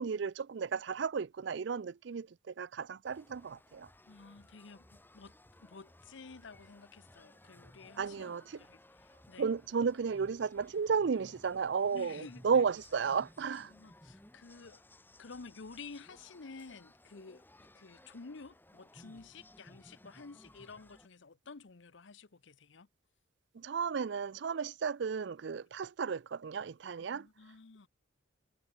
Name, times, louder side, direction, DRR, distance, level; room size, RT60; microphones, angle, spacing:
voice 1, 0.0-3.9 8.0-8.6 9.4-13.7 23.6-27.3, right 6 dB, 60° right, 0.4 m, -33 dB
sound 1, 3.0-21.1, left 1 dB, 10° left, 2.0 m, -59 dB
voice 2, 4.1-5.3 5.6-9.5 11.9-12.6 13.5-14.8 15.2-22.9 27.1-27.9, left 4 dB, 65° left, 0.8 m, -52 dB
head